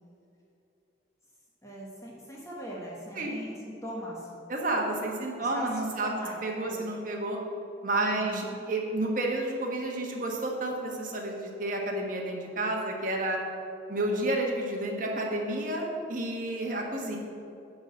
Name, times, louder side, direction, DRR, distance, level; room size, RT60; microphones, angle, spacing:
voice 1, 1.6-4.3 5.4-6.3 6.7-6.9 8.0-8.6, equal, 15° left, -4 dB, 1.3 m, -40 dB
voice 2, 4.5-7.4 7.8-13.4 13.9-17.2, right 1 dB, 45° right, 0 dB, 1.4 m, -30 dB
10.5 x 4.0 x 7.3 m, 2.7 s
head